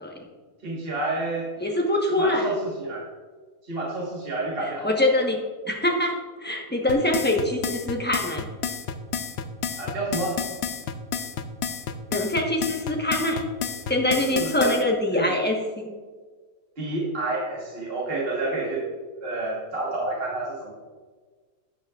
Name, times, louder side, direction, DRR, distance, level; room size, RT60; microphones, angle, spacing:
voice 1, 0.6-1.5 2.2-3.0 3.6-4.9 9.8-10.4 14.1-14.7 15.1-15.4 16.8-18.9 19.1-20.7, right 2 dB, 40° right, -5 dB, 1.7 m, -29 dB
voice 2, 1.6-2.5 4.8-5.4 5.7-8.4 12.1-13.4 13.9-15.9, left 1 dB, 10° left, 0 dB, 1.0 m, -24 dB
sound 1, 6.9-14.8, left 7 dB, 60° left, 0.7 m, -30 dB
12.5 x 8.5 x 2.5 m, 1.4 s
omnidirectional pair, 1.6 m